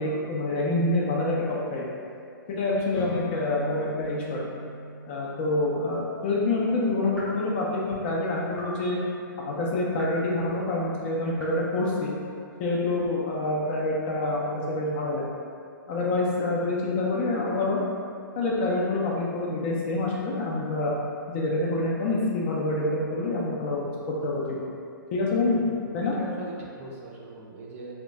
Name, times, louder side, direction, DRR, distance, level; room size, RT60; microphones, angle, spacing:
voice 1, 0.0-1.8 2.5-4.4 5.1-9.0 9.4-12.1 12.6-15.3 15.9-17.8 18.4-20.9 21.3-23.8 24.2-24.7 25.1-25.6 25.9-26.1, left 2 dB, 25° left, -4 dB, 0.3 m, -27 dB
sound 1, 2.9-10.5, equal, 80° left, 0.8 m, -43 dB
sound 2, 5.8-6.1 7.1-7.5 8.5-8.8 9.9-10.3 11.3-11.6, left 1 dB, ahead, 0.7 m, -41 dB
voice 2, 25.5-27.9, right 2 dB, 35° right, -3 dB, 0.5 m, -41 dB
2.2 x 2.1 x 3.8 m, 2.3 s
hypercardioid pair, 155°, 12 cm